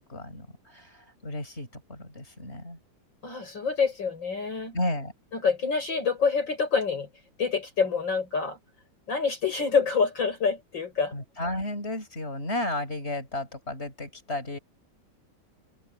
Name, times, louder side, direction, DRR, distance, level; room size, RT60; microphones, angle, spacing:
voice 1, 0.0-2.8 4.7-5.1 11.1-14.6, left 1 dB, 35° left, 7.2 m, -33 dB
voice 2, 3.2-4.7 5.3-7.1 7.4-8.6 9.1-11.1, left 5 dB, 75° left, 6.3 m, -26 dB
open air
omnidirectional pair, 2.0 m